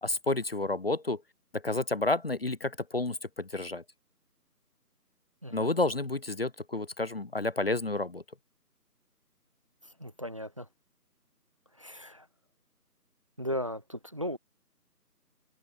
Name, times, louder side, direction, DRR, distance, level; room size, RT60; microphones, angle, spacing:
voice 1, 0.0-1.2 1.5-3.8 5.5-8.2, left 2 dB, 40° left, 1.3 m, -30 dB
voice 2, 10.0-10.7 11.8-12.3 13.4-14.4, equal, 20° right, 1.2 m, -36 dB
figure-of-eight pair, 170°, 48 cm